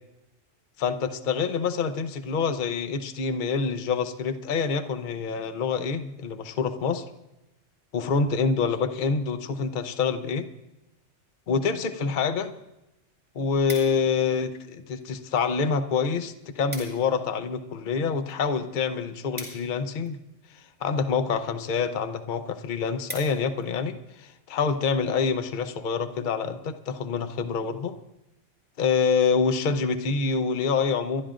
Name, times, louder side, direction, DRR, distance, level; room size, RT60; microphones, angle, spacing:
voice 1, 0.8-7.0 7.9-10.5 11.5-12.5 13.3-20.2 20.5-28.0 28.8-31.2, left 5 dB, 45° left, 10 dB, 0.8 m, -26 dB
sound 1, 13.1-14.3 15.0-15.5 15.8-15.9 16.2-16.3 16.5-17.1 17.5-20.3 21.0-21.4 21.9-22.0 22.3-22.4 22.7-23.7 24.2-24.4, equal, 5° right, 5.8 m, -42 dB
29.5 x 13.0 x 2.5 m, 0.93 s
omnidirectional pair, 1.3 m